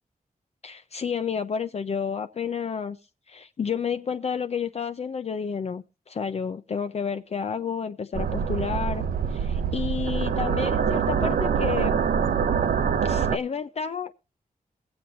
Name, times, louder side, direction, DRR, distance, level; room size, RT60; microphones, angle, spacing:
voice 1, 0.6-3.0 3.3-12.0 13.0-14.2, left 6 dB, 45° left, 0.5 m, -30 dB
sound 1, 8.1-13.4, right 7 dB, 75° right, 0.7 m, -25 dB
23.0 x 7.8 x 2.8 m
wide cardioid pair, 145°, 15 cm